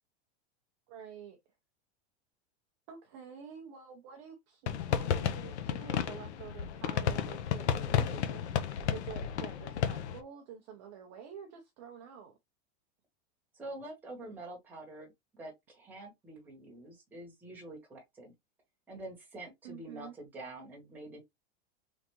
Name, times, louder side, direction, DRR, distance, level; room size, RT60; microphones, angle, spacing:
voice 1, 0.9-1.4 2.9-12.4 19.6-20.1, right 7 dB, 25° right, 0.6 m, -48 dB
sound 1, 4.7-10.2, left 8 dB, 80° left, 0.9 m, -32 dB
voice 2, 13.5-18.3 18.9-21.2, right 2 dB, 5° right, 1.3 m, -46 dB
3.9 x 3.4 x 3.0 m
supercardioid pair, 180°, 33 cm